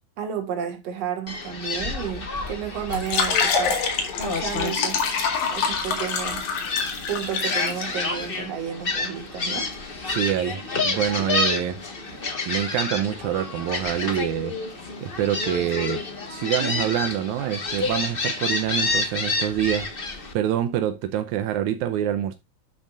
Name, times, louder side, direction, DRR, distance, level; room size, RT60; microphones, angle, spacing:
voice 1, 0.2-3.8 4.2-5.0 5.5-6.5 7.1-9.7, right 8 dB, 60° right, 2.7 m, -32 dB
Gull seagull, 1.3-20.3, left 3 dB, 50° left, 0.6 m, -29 dB
sound 1, 2.9-7.8, left 5 dB, 80° left, 3.3 m, -26 dB
voice 2, 10.1-11.8 12.5-22.4, right 11 dB, 85° right, 2.1 m, -26 dB
12.0 x 6.3 x 2.5 m
omnidirectional pair, 3.4 m